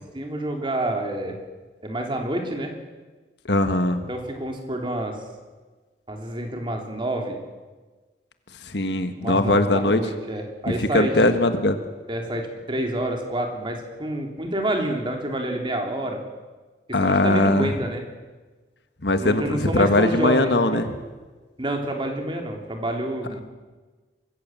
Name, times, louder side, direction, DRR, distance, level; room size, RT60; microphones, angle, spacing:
voice 1, 0.1-1.4 1.8-2.7 4.1-5.2 6.1-7.4 9.2-11.1 12.1-16.2 17.0-18.0 19.2-20.8 21.6-23.4, right 1 dB, 30° right, 2 dB, 3.0 m, -28 dB
voice 2, 3.5-4.0 8.6-10.0 10.7-11.8 16.9-17.7 19.0-20.9, left 2 dB, 70° left, 8 dB, 1.5 m, -20 dB
24.0 x 15.0 x 7.6 m, 1.3 s
head